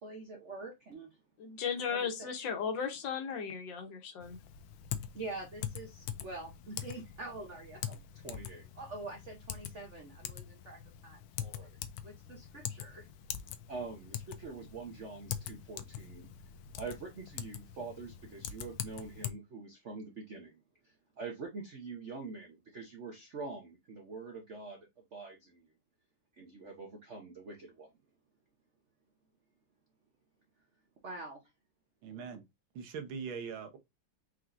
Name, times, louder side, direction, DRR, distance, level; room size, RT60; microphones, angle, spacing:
voice 1, 0.0-1.2 1.9-2.3 5.1-11.7 12.0-13.1 13.7-16.3 16.7-25.7 26.3-27.9 31.0-31.5, right 3 dB, 60° right, 0.7 m, -45 dB
voice 2, 1.4-4.4, left 6 dB, 65° left, 1.5 m, -36 dB
Typing, 4.2-19.3, left 10 dB, 90° left, 1.5 m, -43 dB
voice 3, 32.0-32.4 32.7-33.8, right 6 dB, 75° right, 1.6 m, -41 dB
4.7 x 3.7 x 2.5 m
omnidirectional pair, 2.2 m